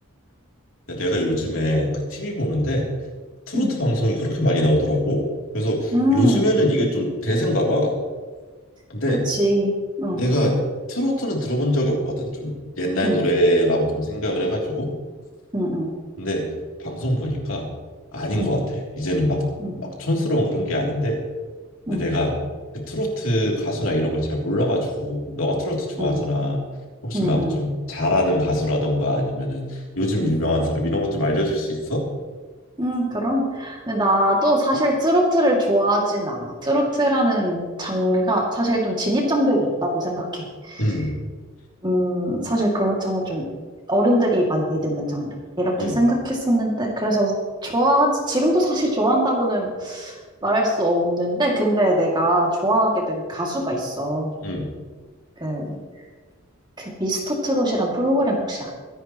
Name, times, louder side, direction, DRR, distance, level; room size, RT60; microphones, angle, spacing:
voice 1, 0.9-2.9 3.5-5.2 5.5-8.0 8.9-9.2 10.1-10.6 10.9-14.9 16.2-16.5 16.8-17.7 18.1-19.4 19.8-21.2 21.9-22.3 22.7-26.6 27.0-32.0 40.8-41.1 45.8-46.0 54.4-54.7, equal, 65° left, -1 dB, 3.2 m, -23 dB
voice 2, 5.9-6.5 9.3-10.2 13.0-13.2 15.5-15.9 18.3-18.5 19.6-19.8 21.9-22.0 26.0-26.3 27.1-27.6 30.2-30.3 32.8-41.0 41.8-43.4 43.9-47.3 47.6-54.3 55.4-55.6 56.8-58.7, equal, 20° right, -1 dB, 2.5 m, -22 dB
24.0 x 11.0 x 3.1 m, 1.4 s
head